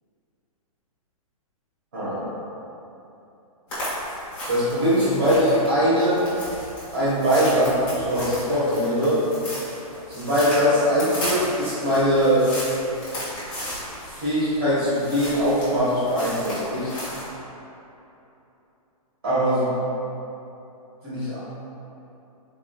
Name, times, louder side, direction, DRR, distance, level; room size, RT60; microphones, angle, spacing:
sound 1, 3.7-17.3, equal, 5° left, 0.8 m, -35 dB
voice 1, 4.5-6.3 6.9-9.2 10.1-12.5 14.2-16.9 19.2-19.7 21.0-21.4, equal, 40° right, -11 dB, 1.5 m, -21 dB
3.8 x 3.7 x 2.3 m, 3.0 s
hypercardioid pair, 180°, 19 cm